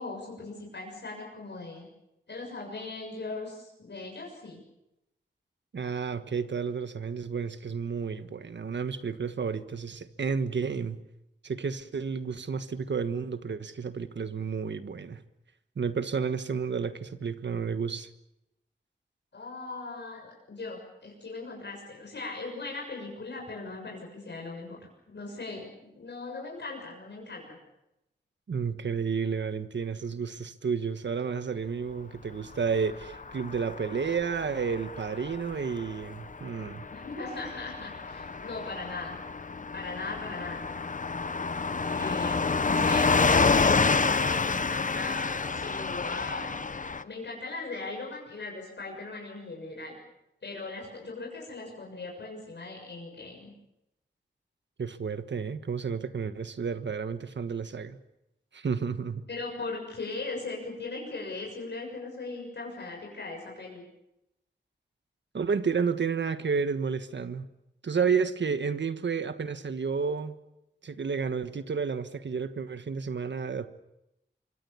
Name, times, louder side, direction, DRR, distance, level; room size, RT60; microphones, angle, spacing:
voice 1, 0.0-1.9 2.3-4.6 19.3-24.8 25.1-27.6 36.9-39.2 39.7-40.7 41.9-46.6 47.0-50.0 50.4-53.5 59.3-63.8, left 3 dB, 75° left, -1 dB, 6.9 m, -39 dB
voice 2, 5.7-11.0 11.4-15.2 15.8-18.1 28.5-36.9 54.8-58.0 58.5-59.3 65.3-67.5 67.8-70.4 70.8-73.7, right 5 dB, 80° right, 11 dB, 1.4 m, -31 dB
Car passing by / Truck, 32.7-47.0, left 4 dB, 45° left, 0.9 m, -29 dB
25.5 x 24.5 x 7.1 m, 0.88 s
wide cardioid pair, 110°, 18 cm